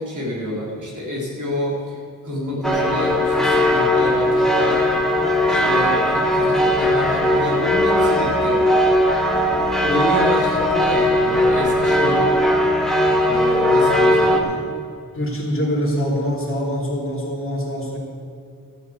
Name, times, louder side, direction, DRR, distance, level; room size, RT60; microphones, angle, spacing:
voice 1, 0.0-2.0 2.2-4.8 5.4-8.6 9.8-12.3 13.2-14.5, left 1 dB, 60° right, -4 dB, 3.9 m, -27 dB
sound 1, 2.6-14.4, left 1 dB, ahead, 1.3 m, -18 dB
voice 2, 15.1-18.0, equal, 40° left, -3 dB, 2.9 m, -24 dB
14.0 x 6.9 x 8.0 m, 2.4 s
wide cardioid pair, 125°, 35 cm